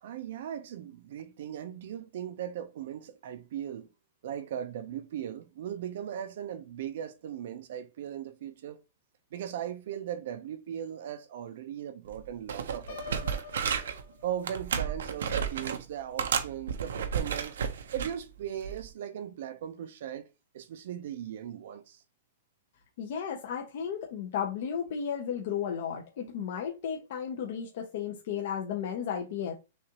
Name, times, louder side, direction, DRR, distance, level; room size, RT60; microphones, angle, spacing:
voice 1, 0.0-3.9 4.2-8.8 9.3-13.4 14.2-20.3 20.5-22.0, right 10 dB, 50° right, 0.5 m, -38 dB
sound 1, 12.1-12.2 12.5-14.0 14.4-15.8 16.2-18.1 18.6-18.9, right 7 dB, 90° right, 0.8 m, -32 dB
Piano, 12.9-14.8, left 6 dB, 60° left, 1.4 m, -46 dB
voice 2, 23.0-29.5, left 8 dB, 45° left, 0.8 m, -34 dB
6.2 x 2.5 x 2.9 m
supercardioid pair, 175°, 0 cm